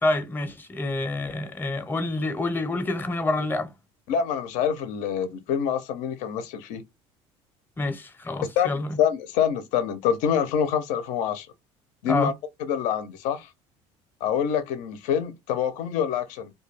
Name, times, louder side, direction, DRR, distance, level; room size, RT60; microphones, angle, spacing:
voice 1, 0.0-3.7 7.8-9.0 12.1-12.3, left 2 dB, 15° left, 0.6 m, -27 dB
voice 2, 4.1-6.8 8.6-11.5 12.0-12.3 12.6-13.5 14.2-16.5, left 8 dB, 80° left, 0.6 m, -26 dB
2.2 x 2.2 x 3.2 m
cardioid pair, 115°, 13 cm